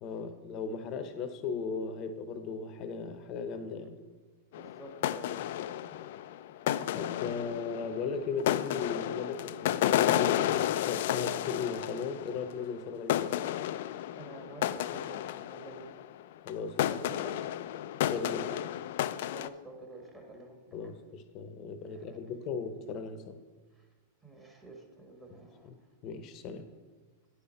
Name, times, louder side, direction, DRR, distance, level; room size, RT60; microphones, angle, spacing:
voice 1, 0.0-4.0 6.9-13.4 16.4-16.9 18.1-18.5 20.7-23.4 25.3-25.4 25.6-25.7 26.0-26.7, left 5 dB, 40° left, 9 dB, 0.8 m, -37 dB
sound 1, 4.5-12.8 13.1-16.1 16.5-16.6 16.8-19.5, left 12 dB, 65° left, 0.3 m, -32 dB
voice 2, 4.5-6.0 13.9-15.9 16.9-17.4 19.3-20.9 21.8-22.5 23.8-23.9 24.2-25.7 26.7-26.8, right 1 dB, 15° right, 0 dB, 1.7 m, -49 dB
10.0 x 5.6 x 4.2 m, 1.4 s
hypercardioid pair, 110°, 0 cm